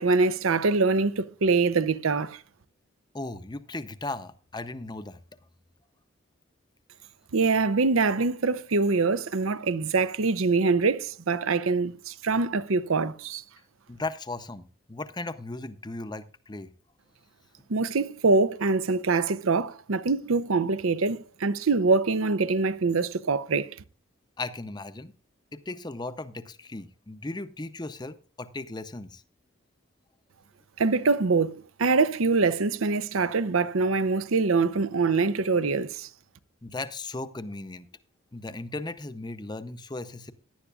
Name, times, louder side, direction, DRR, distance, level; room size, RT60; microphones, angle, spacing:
voice 1, 0.0-2.4 7.3-13.4 17.7-23.8 30.8-36.1, right 4 dB, 75° right, 0.6 m, -24 dB
voice 2, 3.1-5.2 13.9-16.7 24.4-25.1 25.5-29.2 36.6-37.9 38.3-40.3, left 2 dB, 20° left, 0.6 m, -37 dB
16.5 x 11.0 x 2.4 m
head